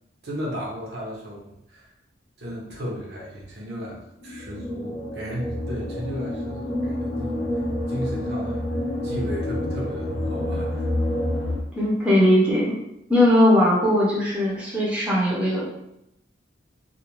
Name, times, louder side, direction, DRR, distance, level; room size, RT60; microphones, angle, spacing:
voice 1, 0.2-1.9 2.4-7.5 7.9-8.6 9.0-10.9, equal, 65° right, -4 dB, 0.7 m, -34 dB
sound 1, 3.4-3.5 3.9-4.0 4.5-4.6 5.5-11.6, left 1 dB, 70° left, 0.5 m, -34 dB
sound 2, 4.2-11.5, left 1 dB, 30° left, 0.8 m, -29 dB
voice 2, 11.7-12.6 13.1-15.6, left 1 dB, 5° right, -7 dB, 0.5 m, -19 dB
2.4 x 2.1 x 2.9 m, 0.83 s
head